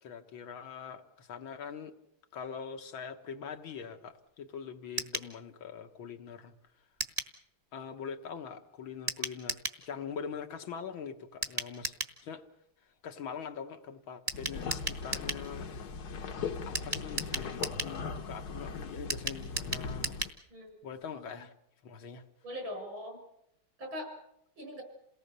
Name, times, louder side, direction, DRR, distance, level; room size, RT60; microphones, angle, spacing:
voice 1, 0.0-1.9 2.3-6.5 7.7-11.9 12.2-12.4 13.0-15.7 16.6-20.3 20.8-21.5 21.8-22.2, left 6 dB, 70° left, 5 dB, 2.1 m, -43 dB
sound 1, 5.0-5.3 7.0-7.3 9.1-9.8 11.4-12.2 14.3-15.4 16.7-18.0 19.1-20.4 20.7-20.8 21.0-21.1, right 2 dB, 20° right, 1.5 m, -36 dB
sound 2, 14.3-20.3, left 5 dB, 55° left, 1.6 m, -39 dB
voice 2, 21.1-21.4 22.4-23.2 23.8-24.1 24.6-24.8, left 1 dB, 70° right, 3 dB, 7.0 m, -41 dB
28.5 x 18.5 x 6.8 m, 0.81 s
omnidirectional pair, 2.3 m